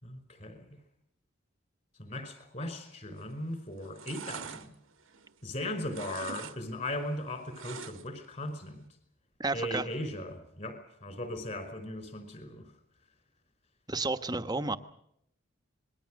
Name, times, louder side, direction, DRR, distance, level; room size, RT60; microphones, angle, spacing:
voice 1, 0.0-0.8 2.0-4.8 5.4-8.9 9.5-12.7, left 1 dB, 40° left, 10 dB, 5.2 m, -38 dB
sound 1, 3.1-3.5 3.8-5.6 5.9-6.6 6.8-8.3 8.6-8.7, right 6 dB, 90° right, 1.6 m, -44 dB
voice 2, 9.4-9.9 13.9-14.8, right 3 dB, 20° right, 9 dB, 1.1 m, -31 dB
27.0 x 21.5 x 6.4 m, 0.73 s
head